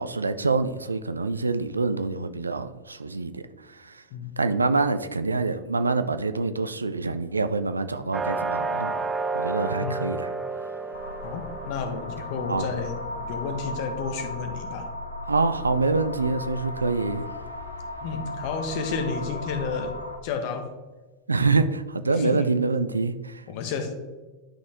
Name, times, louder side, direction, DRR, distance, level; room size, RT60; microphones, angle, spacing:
voice 1, 0.0-3.4 3.7-4.0 4.4-9.0 9.3-10.3 12.5-12.7 15.2-17.2 21.3-23.4, right 3 dB, 80° right, 0.4 m, -26 dB
sound 1, 8.1-13.7, right 3 dB, 15° right, 0.5 m, -32 dB
sound 2, 10.9-20.2, left 2 dB, 80° left, 0.7 m, -36 dB
voice 2, 11.2-13.0 13.3-14.9 18.0-20.0 20.2-20.7 22.1-22.5 23.5-23.9, left 5 dB, 45° left, 1.1 m, -31 dB
11.0 x 4.2 x 3.5 m
figure-of-eight pair, 90°, 0 cm